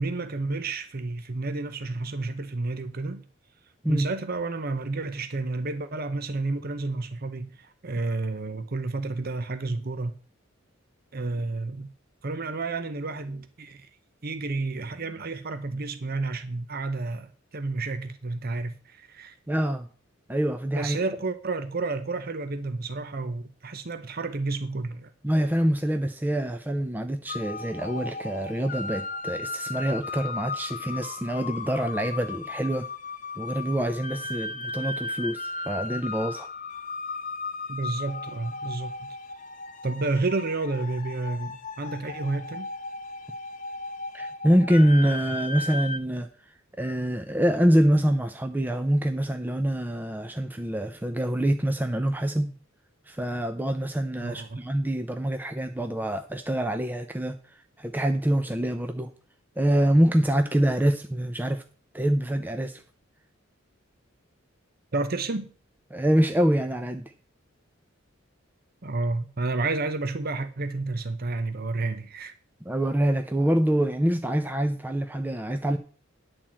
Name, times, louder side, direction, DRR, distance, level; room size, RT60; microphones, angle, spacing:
voice 1, 0.0-3.2 3.9-10.1 11.1-11.9 12.2-13.9 14.2-19.3 20.7-25.1 37.7-39.2 39.8-42.7 54.2-54.6 64.9-65.5 68.8-72.3, right 3 dB, 45° right, 0.8 m, -31 dB
voice 2, 19.5-19.8 20.3-21.0 25.2-32.9 33.4-36.5 44.1-46.3 46.8-52.5 53.1-57.4 57.8-59.1 59.6-61.6 61.9-62.8 65.9-67.1 72.7-75.8, right 1 dB, 10° right, 0.5 m, -25 dB
sound 1, 27.3-46.0, left 3 dB, 40° left, 0.6 m, -36 dB
10.5 x 4.4 x 7.5 m
head